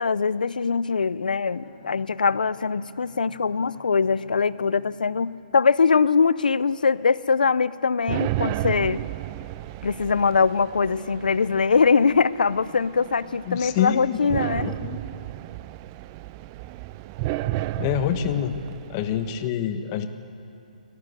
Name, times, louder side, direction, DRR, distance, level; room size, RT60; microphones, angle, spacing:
voice 1, 0.0-9.0 9.8-14.7, left 5 dB, 85° left, 18 dB, 0.6 m, -22 dB
Bowed string instrument, 1.4-5.6, left 3 dB, 50° left, 6.0 m, -50 dB
sound 1, 8.1-19.5, right 15 dB, 25° right, 0.4 m, -33 dB
voice 2, 13.5-14.2 14.6-15.0 17.8-18.5 18.9-20.1, left 10 dB, 30° left, 8 dB, 1.3 m, -26 dB
21.5 x 18.0 x 8.2 m, 2.7 s
hypercardioid pair, 150°, 4 cm